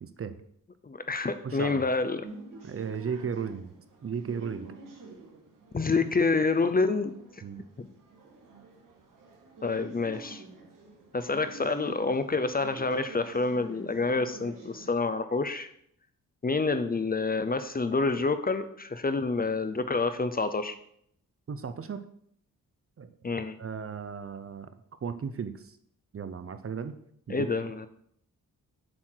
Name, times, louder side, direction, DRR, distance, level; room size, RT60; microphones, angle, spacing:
voice 1, 0.0-0.4 1.4-1.8 2.6-3.7 4.0-4.7 7.4-7.6 21.5-22.0 23.0-23.1 23.6-24.7 25.0-25.5 26.1-26.9 27.3-27.5, right 6 dB, 40° right, 11 dB, 0.6 m, -35 dB
voice 2, 0.8-2.2 5.7-7.1 7.8-7.9 9.6-10.4 11.1-15.7 16.4-20.8 23.2-23.6 27.3-27.9, left 3 dB, 25° left, 10 dB, 0.6 m, -28 dB
sound 1, 2.2-14.9, right 3 dB, 65° right, 1.9 m, -49 dB
7.5 x 6.4 x 4.5 m, 0.68 s
cardioid pair, 95°, 34 cm